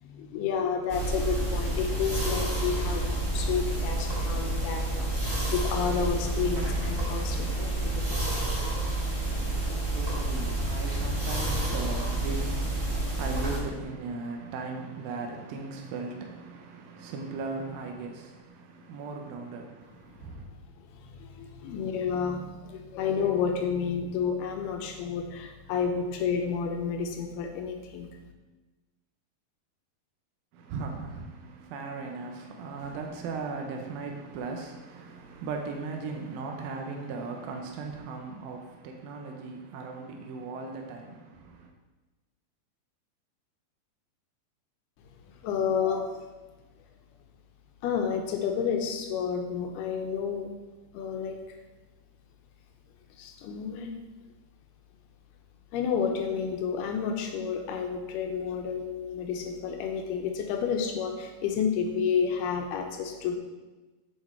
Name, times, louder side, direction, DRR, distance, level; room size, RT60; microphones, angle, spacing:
voice 1, 0.0-8.2 21.0-28.1 45.4-46.2 47.8-50.5 50.9-51.4 53.2-54.0 55.7-63.4, left 6 dB, 80° left, 2.6 m, -30 dB
sound 1, 0.9-13.6, right 2 dB, 25° right, 1.8 m, -29 dB
voice 2, 9.2-20.5 30.5-41.7, right 4 dB, 75° right, 2.3 m, -38 dB
7.7 x 7.3 x 4.3 m
omnidirectional pair, 4.8 m